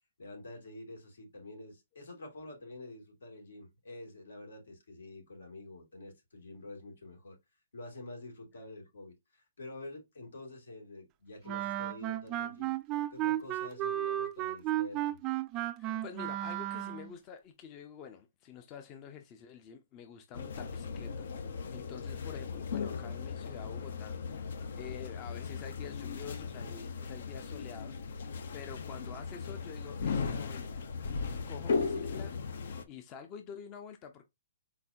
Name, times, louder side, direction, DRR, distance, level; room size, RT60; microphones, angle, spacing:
voice 1, 0.2-7.4 7.7-12.7 13.1-15.2, left 2 dB, 85° left, 2.6 m, -48 dB
Wind instrument woodwind instrument, 11.5-17.1, right 13 dB, 25° right, 0.3 m, -34 dB
voice 2, 15.8-21.3 21.7-30.9 31.5-32.3 32.9-34.3, left 7 dB, 25° left, 0.6 m, -48 dB
sound 1, 20.3-32.8, left 5 dB, 65° left, 0.8 m, -37 dB
4.2 x 4.0 x 2.7 m
hypercardioid pair, 150°, 0 cm